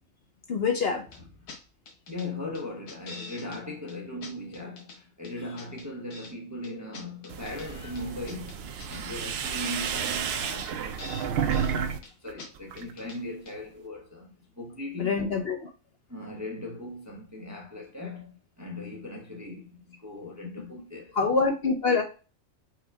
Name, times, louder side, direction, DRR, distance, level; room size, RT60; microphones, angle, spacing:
voice 1, 0.5-1.0 15.0-15.7 21.1-22.0, left 4 dB, 55° left, 0.8 m, -25 dB
sound 1, 1.1-1.2 1.5-1.6 1.9-2.3 2.6-3.6 3.9-4.0 4.2-5.0 5.2-6.3 6.6-7.7 8.0-9.0 9.3-9.4 9.6-9.7 10.0-10.4 10.7-10.8 11.0-11.8 12.0-12.1 12.4-12.5 12.8-13.2 13.5-13.6, left 3 dB, 80° left, 1.3 m, -45 dB
voice 2, 2.1-8.6 8.9-15.2 16.1-21.2, left 2 dB, 20° right, 0.5 m, -39 dB
sound 2, 7.3-12.0 12.3-12.9, right 7 dB, 65° right, 0.6 m, -31 dB
4.8 x 2.3 x 4.5 m
omnidirectional pair, 1.4 m